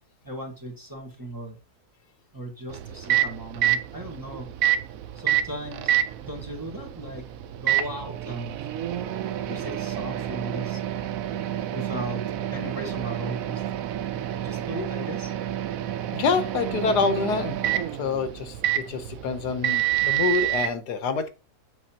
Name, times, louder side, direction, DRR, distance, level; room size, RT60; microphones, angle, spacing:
voice 1, 0.2-1.6 2.3-4.5 5.1-6.0 6.2-7.2 7.6-8.6 9.4-11.1 11.3-12.2 12.5-13.7 14.3-15.3, right 1 dB, 15° right, 1 dB, 1.4 m, -37 dB
Microwave oven, 2.7-20.7, right 12 dB, 65° right, 1.0 m, -28 dB
voice 2, 16.1-17.6 18.0-21.3, left 5 dB, 85° left, 9 dB, 1.5 m, -26 dB
7.9 x 6.6 x 2.9 m, 0.30 s
omnidirectional pair, 1.7 m